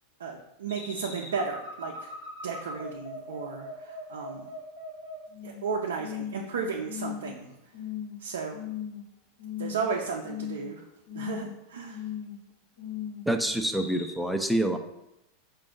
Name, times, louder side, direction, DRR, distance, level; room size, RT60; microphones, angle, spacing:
voice 1, 0.2-2.1 2.4-4.5 5.4-7.6 8.2-8.6 9.6-10.8 11.1-12.0, right 5 dB, 85° right, 0 dB, 0.5 m, -34 dB
sound 1, 0.7-5.7 6.0-6.5 6.8-7.4 7.7-8.1 8.5-9.1 9.4-9.9 10.2-10.7 11.1-11.5 11.9-12.4 12.8-13.2 13.6-14.1, left 7 dB, 75° left, 1.1 m, -38 dB
voice 2, 13.3-14.8, right 1 dB, ahead, 6 dB, 0.4 m, -26 dB
4.9 x 2.5 x 3.7 m, 0.88 s
hypercardioid pair, 110°, 0 cm